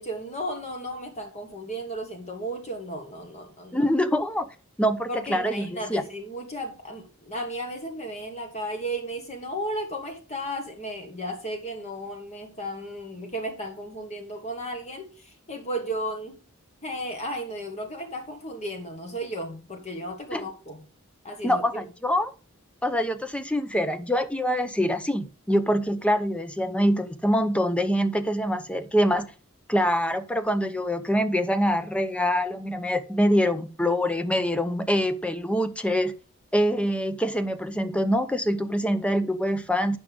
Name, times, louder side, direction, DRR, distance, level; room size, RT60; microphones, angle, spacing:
voice 1, 0.0-3.9 5.1-16.4 16.8-20.8 21.2-21.8, right 1 dB, 30° left, 1.5 m, -34 dB
voice 2, 3.7-4.5 4.8-6.0 20.3-20.5 21.4-22.3 22.8-29.3 29.7-36.1 36.5-40.0, equal, 5° left, 0.7 m, -25 dB
8.5 x 6.2 x 5.1 m
head